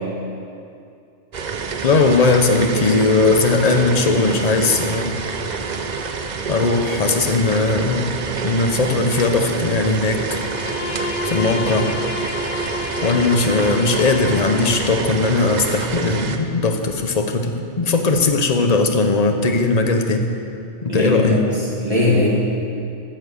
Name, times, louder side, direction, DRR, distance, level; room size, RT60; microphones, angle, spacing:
sound 1, 1.3-16.4, right 5 dB, 45° right, 0.7 m, -27 dB
voice 1, 1.8-5.2 6.5-8.1 8.4-10.2 11.2-11.9 13.0-20.3 20.8-21.4, left 3 dB, 35° left, 5 dB, 0.9 m, -18 dB
Bowed string instrument, 10.2-15.2, left 3 dB, 55° left, 0.6 m, -30 dB
voice 2, 20.9-22.3, left 2 dB, 30° right, -6 dB, 2.5 m, -19 dB
13.5 x 7.2 x 6.5 m, 2.5 s
omnidirectional pair, 1.3 m